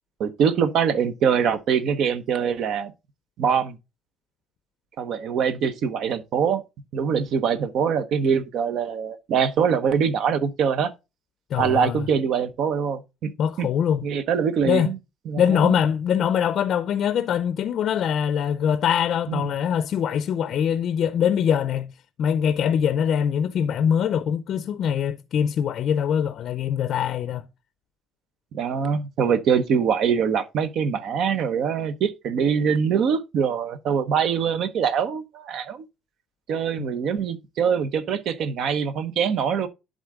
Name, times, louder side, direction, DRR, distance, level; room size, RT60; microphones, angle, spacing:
voice 1, 0.2-2.9 3.4-3.8 5.0-6.6 6.9-10.9 11.6-13.3 13.6-13.7 14.0-15.0 15.3-15.7 19.3-19.5 28.5-35.8 36.5-39.7, right 7 dB, 55° right, 0.9 m, -23 dB
voice 2, 11.5-12.0 13.4-14.0 14.7-14.9 15.4-21.9 22.2-27.4 36.8-36.9, left 8 dB, 50° left, 0.5 m, -23 dB
11.0 x 3.8 x 3.6 m
cardioid pair, 130°, 0 cm